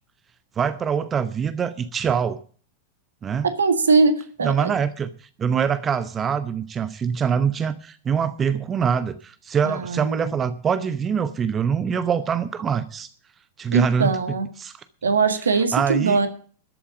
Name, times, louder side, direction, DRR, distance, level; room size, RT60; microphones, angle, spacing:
voice 1, 0.6-2.4 3.2-3.5 4.4-5.1 5.4-13.1 13.6-14.2 14.6-14.7 15.7-16.2, right 7 dB, 25° right, 13 dB, 0.8 m, -24 dB
voice 2, 3.4-4.7 9.6-10.3 13.7-14.5 15.0-16.3, right 4 dB, 70° right, 8 dB, 1.7 m, -21 dB
13.5 x 8.3 x 7.1 m, 0.43 s
figure-of-eight pair, 90°, 0 cm